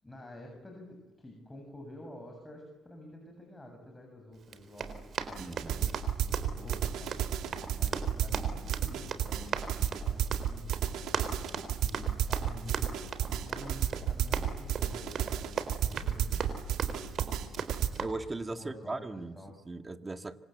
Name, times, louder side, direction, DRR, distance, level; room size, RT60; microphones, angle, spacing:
voice 1, 0.0-10.8 11.7-16.4 18.5-19.6, left 1 dB, 15° left, 2 dB, 7.4 m, -49 dB
Run, 4.4-18.1, right 6 dB, 55° right, 4.0 m, -39 dB
voice 2, 5.4-5.8 16.3-16.5 18.0-19.4 19.7-20.4, right 3 dB, 25° right, 8 dB, 1.9 m, -38 dB
sound 1, 5.4-17.9, right 10 dB, 85° right, 2.7 m, -32 dB
27.0 x 25.0 x 8.0 m, 1.1 s
cardioid pair, 90°, 0 cm